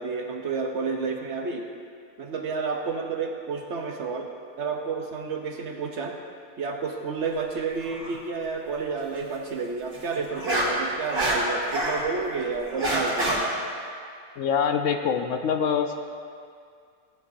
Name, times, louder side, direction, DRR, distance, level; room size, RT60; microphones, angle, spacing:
voice 1, 0.0-1.7 2.2-4.3 4.6-6.2 6.6-13.5, right 4 dB, 60° right, 3 dB, 0.9 m, -30 dB
sound 1, 7.8-8.1 9.9-12.0 12.4-13.4, right 1 dB, 80° right, 2.6 m, -26 dB
voice 2, 14.4-16.0, left 7 dB, 70° left, 6 dB, 0.8 m, -25 dB
14.5 x 9.7 x 2.6 m, 2.2 s
omnidirectional pair, 1.5 m